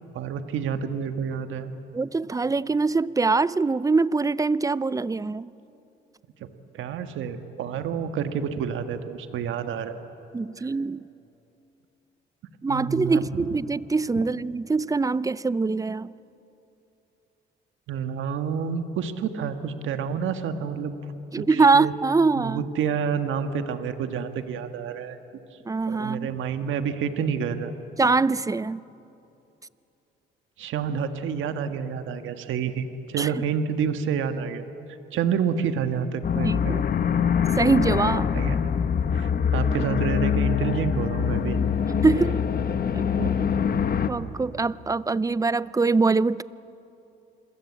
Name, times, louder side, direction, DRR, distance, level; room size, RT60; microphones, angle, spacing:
voice 1, 0.1-1.7 6.4-6.5 6.7-10.0 12.7-13.5 14.2-14.3 17.9-21.0 21.4-21.9 22.4-25.2 25.5-25.6 25.9-27.7 30.6-34.7 35.1-36.8 38.3-38.7 39.1-41.6 43.2-43.3, right 7 dB, 80° right, 8 dB, 1.6 m, -29 dB
voice 2, 1.9-5.5 10.3-11.0 12.6-16.1 21.3-22.6 25.7-26.3 28.0-28.8 33.2-33.3 36.4-36.8 37.6-38.3 42.0-42.4 42.9-43.1 44.1-46.4, right 4 dB, 15° right, 19 dB, 0.5 m, -23 dB
sound 1, 36.2-44.1, left 7 dB, 50° left, 1.3 m, -24 dB
28.0 x 22.0 x 8.6 m, 2.8 s
cardioid pair, 90°, 20 cm